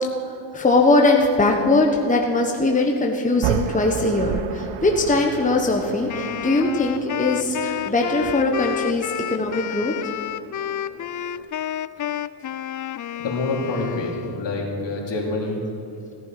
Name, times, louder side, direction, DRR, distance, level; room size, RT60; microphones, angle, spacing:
voice 1, 0.0-9.9, left 2 dB, 15° left, 1 dB, 1.2 m, -21 dB
sound 1, 3.4-11.4, right 9 dB, 80° right, 0.8 m, -33 dB
Wind instrument woodwind instrument, 6.1-14.5, left 11 dB, 40° left, 0.4 m, -30 dB
voice 2, 13.2-15.6, left 2 dB, 60° left, -1 dB, 3.2 m, -26 dB
17.0 x 11.0 x 5.9 m, 2.9 s
cardioid pair, 95°, 49 cm